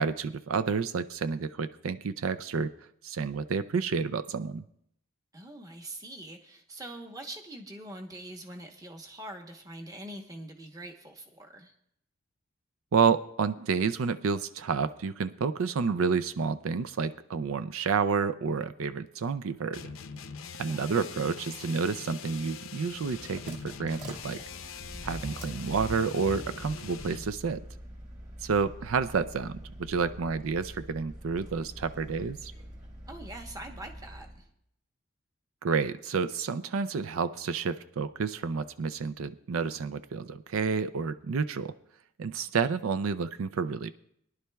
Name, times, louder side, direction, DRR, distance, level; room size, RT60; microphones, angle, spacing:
voice 1, 0.0-2.7 3.0-4.6 12.9-19.9 20.6-24.4 25.0-27.6 28.4-32.5 35.6-41.7 42.2-43.9, right 5 dB, 80° right, 13 dB, 0.4 m, -30 dB
voice 2, 5.3-11.7 20.7-21.1 33.1-34.5, right 1 dB, 15° right, 3 dB, 1.0 m, -44 dB
sound 1, 19.7-27.3, left 6 dB, 75° left, 0.6 m, -43 dB
sound 2, 22.9-34.4, equal, 35° right, 2.4 m, -44 dB
22.0 x 11.0 x 2.3 m, 0.73 s
head